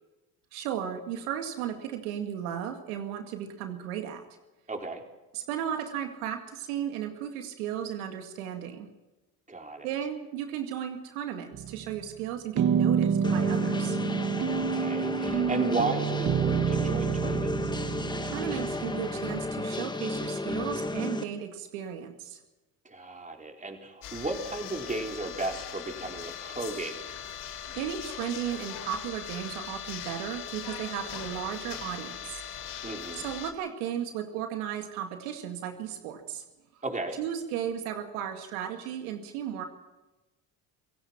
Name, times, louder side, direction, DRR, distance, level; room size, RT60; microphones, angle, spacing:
voice 1, 0.5-4.2 5.3-8.9 9.8-14.0 18.2-22.4 27.8-32.7 33.1-36.4 37.1-39.7, right 9 dB, 90° right, 5 dB, 2.2 m, -35 dB
voice 2, 4.7-5.0 9.5-9.9 14.5-17.7 22.8-26.9 32.8-33.3 36.8-37.2, right 2 dB, 20° right, 2 dB, 4.2 m, -34 dB
sound 1, 11.5-12.1 12.6-19.5, right 7 dB, 45° right, 1.3 m, -28 dB
sound 2, 13.2-21.2, left 2 dB, 10° left, 1.4 m, -33 dB
sound 3, 24.0-33.5, left 9 dB, 65° left, 3.2 m, -40 dB
27.5 x 17.0 x 6.0 m, 1.1 s
supercardioid pair, 80°, 42 cm